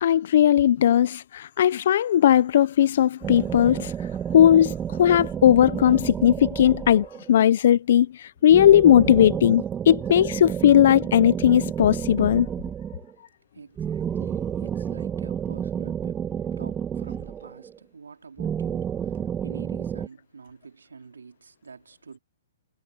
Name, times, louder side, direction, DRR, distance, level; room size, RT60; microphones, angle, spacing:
voice 1, 0.0-3.9 4.3-12.5, left 10 dB, 60° left, 0.6 m, -18 dB
sound 1, 3.2-7.4 8.5-13.1 13.8-17.8 18.4-20.1, right 8 dB, 15° right, 1.4 m, -30 dB
voice 2, 13.2-22.2, right 5 dB, 90° right, 4.1 m, -47 dB
hypercardioid pair, 135°, 0 cm